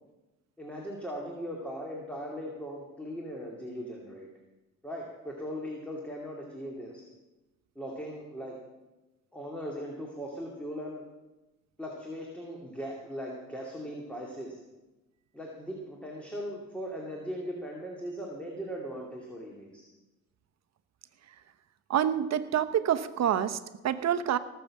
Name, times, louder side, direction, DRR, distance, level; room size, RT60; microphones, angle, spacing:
voice 1, 0.6-4.3 4.8-7.0 7.8-8.6 9.3-11.0 11.8-14.6 15.3-19.8, equal, 5° left, -2 dB, 2.6 m, -39 dB
voice 2, 21.9-24.4, right 9 dB, 60° right, 11 dB, 0.9 m, -27 dB
18.0 x 6.8 x 7.5 m, 1.1 s
cardioid pair, 90°, 30 cm